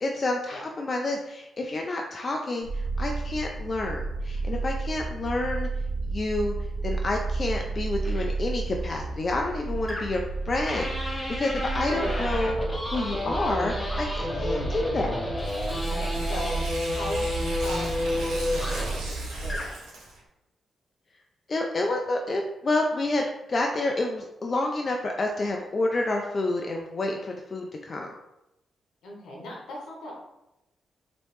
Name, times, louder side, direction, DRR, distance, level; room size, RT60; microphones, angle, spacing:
voice 1, 0.0-5.7 6.0-6.5 6.8-12.5 12.9-15.2 21.5-28.1, left 2 dB, 45° left, 1 dB, 0.4 m, -29 dB
sound 1, 2.6-19.6, right 3 dB, 65° right, 1.3 m, -32 dB
sound 2, 8.0-8.3 9.9-10.3 10.7-19.0 19.4-19.8, left 1 dB, 20° left, 0.9 m, -31 dB
voice 2, 11.9-12.4 15.9-17.3 17.6-19.8 29.0-30.1, left 1 dB, 80° left, -2 dB, 0.9 m, -37 dB
Tearing, 15.4-20.2, right 2 dB, 85° right, 0.9 m, -39 dB
3.1 x 3.0 x 3.0 m, 0.89 s
supercardioid pair, 45°, 0 cm